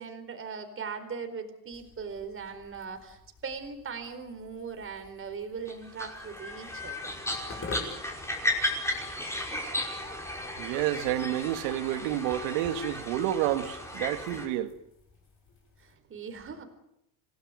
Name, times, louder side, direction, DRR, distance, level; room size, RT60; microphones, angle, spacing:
voice 1, 0.0-7.4 15.8-16.6, right 5 dB, 25° right, 4.4 m, -40 dB
sound 1, 1.7-16.0, left 4 dB, 25° left, 6.5 m, -49 dB
sound 2, 5.7-14.5, left 1 dB, 5° left, 5.3 m, -35 dB
voice 2, 10.6-14.7, right 12 dB, 70° right, 2.2 m, -30 dB
27.0 x 18.5 x 9.1 m
supercardioid pair, 135°, 50 cm